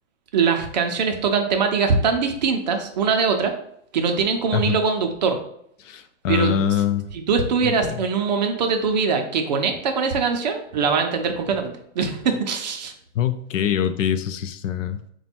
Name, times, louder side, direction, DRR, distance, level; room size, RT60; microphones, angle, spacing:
voice 1, 0.3-3.5 3.9-5.4 6.3-6.5 7.1-12.9, right 5 dB, 35° right, 4 dB, 0.4 m, -22 dB
voice 2, 5.8-7.1 7.6-7.9 13.1-15.1, left 9 dB, 75° left, 10 dB, 0.5 m, -24 dB
4.1 x 2.2 x 4.2 m, 0.70 s
hypercardioid pair, 165°, 38 cm